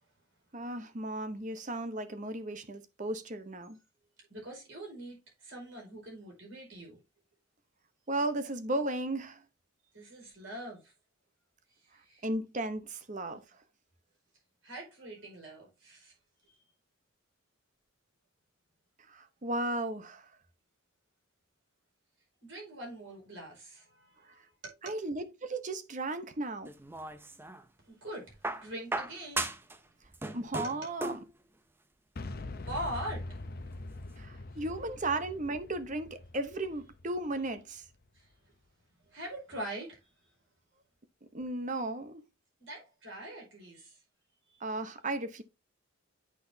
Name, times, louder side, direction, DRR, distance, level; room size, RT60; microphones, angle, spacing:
voice 1, 0.5-3.8 8.1-9.4 12.2-13.4 19.1-20.3 24.8-26.7 30.3-31.2 34.2-37.8 41.3-42.2 44.6-45.4, right 2 dB, 35° right, 0.9 m, -35 dB
voice 2, 4.3-7.0 9.9-10.9 11.8-12.3 14.6-16.1 16.4-16.6 22.4-24.9 27.9-29.6 30.6-30.9 32.7-33.4 34.5-34.6 38.1-38.5 39.0-40.1 42.6-44.0 44.5-44.6, right 1 dB, 60° right, 4.9 m, -43 dB
sound 1, 26.7-27.6 28.4-29.8 30.0-31.3 32.4-32.5, right 2 dB, 10° right, 0.5 m, -36 dB
Boom, 32.2-38.0, left 2 dB, 45° left, 0.6 m, -43 dB
8.4 x 5.9 x 2.7 m
head